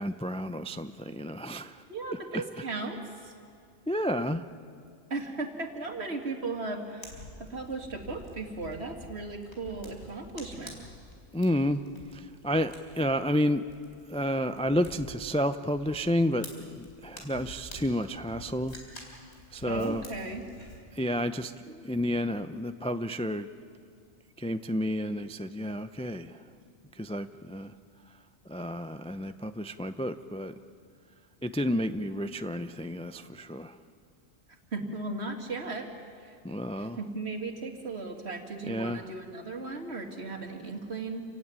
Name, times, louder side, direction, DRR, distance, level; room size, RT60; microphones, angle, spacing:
voice 1, 0.0-1.8 2.1-2.4 3.9-4.4 11.3-11.8 12.1-13.6 14.1-18.8 19.5-20.0 20.9-23.5 24.4-26.4 27.0-27.7 28.5-30.5 31.4-33.8 36.4-37.0 38.7-39.1, equal, 10° left, 10 dB, 0.4 m, -31 dB
voice 2, 1.9-3.0 3.2-3.3 5.1-10.8 19.7-20.4 34.7-35.9 36.2-36.3 36.8-41.2, right 3 dB, 65° right, 4 dB, 2.5 m, -36 dB
Fire, 7.0-20.8, left 1 dB, 70° left, 4.1 m, -49 dB
28.0 x 16.5 x 9.7 m, 2.3 s
omnidirectional pair, 1.2 m